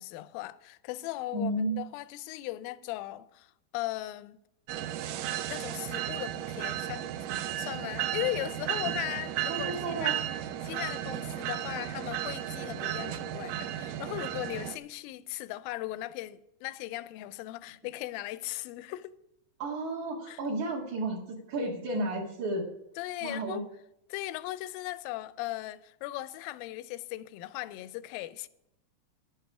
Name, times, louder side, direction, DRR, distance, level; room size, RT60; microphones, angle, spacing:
voice 1, 0.0-4.4 5.5-7.1 7.6-10.1 10.6-19.1 20.3-20.4 23.0-23.6 24.1-28.5, left 16 dB, 80° left, 2.3 m, -38 dB
voice 2, 1.3-1.9 9.5-10.2 19.6-22.7 23.2-23.6, right 2 dB, 55° right, 3.2 m, -32 dB
sound 1, 4.7-14.8, right 12 dB, 80° right, 1.9 m, -34 dB
11.5 x 11.0 x 4.9 m
omnidirectional pair, 4.5 m